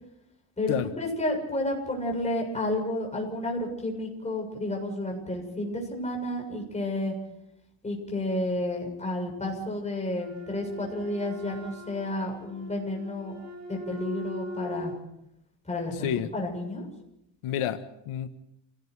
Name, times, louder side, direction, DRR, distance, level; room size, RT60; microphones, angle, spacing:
voice 1, 0.6-7.2 7.8-13.4 13.7-14.9 15.7-16.9, left 1 dB, 15° left, 0 dB, 7.3 m, -31 dB
Wind instrument woodwind instrument, 10.1-15.0, equal, 35° right, 7.8 m, -40 dB
voice 2, 17.4-18.3, left 10 dB, 85° left, 8 dB, 1.5 m, -29 dB
29.0 x 18.5 x 4.8 m, 0.80 s
cardioid pair, 160°, 49 cm